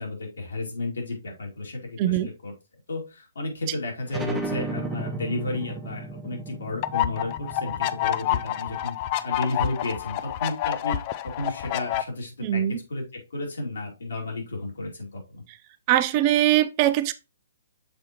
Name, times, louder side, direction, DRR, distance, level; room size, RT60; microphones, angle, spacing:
voice 1, 0.0-2.5 2.9-9.0 9.2-11.0 11.4-12.6 12.9-15.4, left 2 dB, 65° left, 2.5 m, -32 dB
voice 2, 2.0-2.3 3.7-3.8 12.4-12.8 15.5-15.6 15.9-17.1, right 13 dB, 30° right, 0.4 m, -22 dB
sound 1, 4.1-9.4, right 2 dB, 5° right, 0.8 m, -35 dB
sound 2, 6.8-12.0, left 13 dB, 35° left, 0.4 m, -28 dB
7.0 x 4.6 x 2.9 m
figure-of-eight pair, 125°, 0 cm